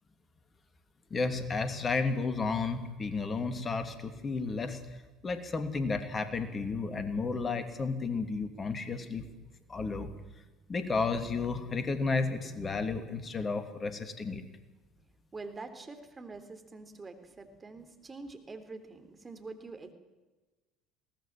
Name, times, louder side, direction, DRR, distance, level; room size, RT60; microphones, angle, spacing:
voice 1, 1.1-4.8 5.2-9.2 9.7-10.1 10.7-14.4, left 4 dB, 30° left, 8 dB, 2.9 m, -32 dB
voice 2, 15.3-19.9, right 3 dB, 25° right, 7 dB, 3.7 m, -45 dB
22.0 x 18.0 x 7.7 m, 1.2 s
hypercardioid pair, 65°, 0 cm